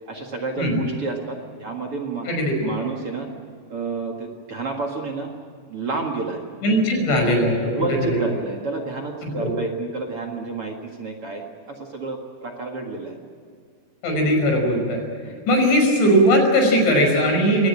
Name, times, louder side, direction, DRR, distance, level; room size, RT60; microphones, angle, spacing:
voice 1, 0.1-2.3 2.6-3.3 3.7-5.3 5.7-6.4 7.7-13.2 15.2-15.4, right 3 dB, 45° right, 1 dB, 2.0 m, -30 dB
voice 2, 6.6-8.2 9.2-9.6 14.0-17.7, equal, 85° left, 2 dB, 7.8 m, -19 dB
22.5 x 19.0 x 8.8 m, 2.1 s
omnidirectional pair, 5.1 m